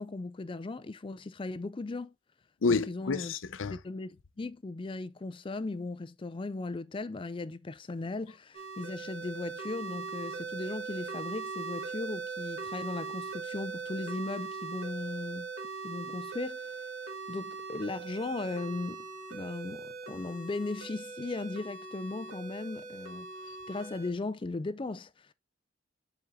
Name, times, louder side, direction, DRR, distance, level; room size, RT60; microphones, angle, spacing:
voice 1, 0.0-2.1 2.9-3.3 3.7-15.5 15.8-16.8 17.3-19.1 19.3-25.3, left 3 dB, 25° left, 0.4 m, -37 dB
voice 2, 2.6-3.8, left 4 dB, 80° left, 0.6 m, -29 dB
sound 1, 8.5-24.1, right 4 dB, 80° right, 1.5 m, -40 dB
7.0 x 4.0 x 3.5 m
head